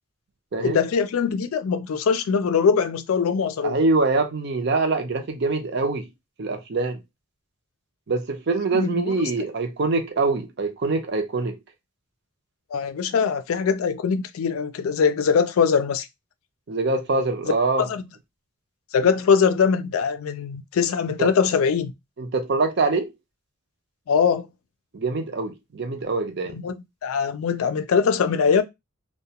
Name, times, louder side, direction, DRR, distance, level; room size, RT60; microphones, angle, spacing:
voice 1, 0.6-3.8 8.7-9.2 12.7-16.1 17.8-18.0 18.9-21.9 24.1-24.5 26.5-26.8 27.0-28.6, left 6 dB, 80° left, 0.4 m, -22 dB
voice 2, 3.6-6.1 6.4-7.0 8.1-11.6 16.7-17.9 21.2-21.3 22.2-23.1 24.9-26.6, right 3 dB, 50° right, 0.5 m, -24 dB
2.3 x 2.2 x 2.8 m
head